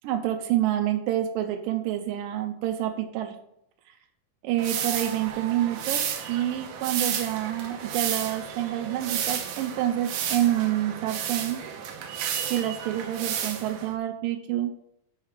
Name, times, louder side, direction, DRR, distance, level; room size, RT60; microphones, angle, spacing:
voice 1, 0.0-3.4 4.4-6.0 6.3-11.6 12.5-14.7, right 12 dB, 90° right, 5 dB, 2.3 m, -27 dB
sound 1, 4.6-13.9, right 8 dB, 75° right, 2.1 m, -32 dB
6.5 x 5.7 x 4.7 m, 0.78 s
omnidirectional pair, 3.9 m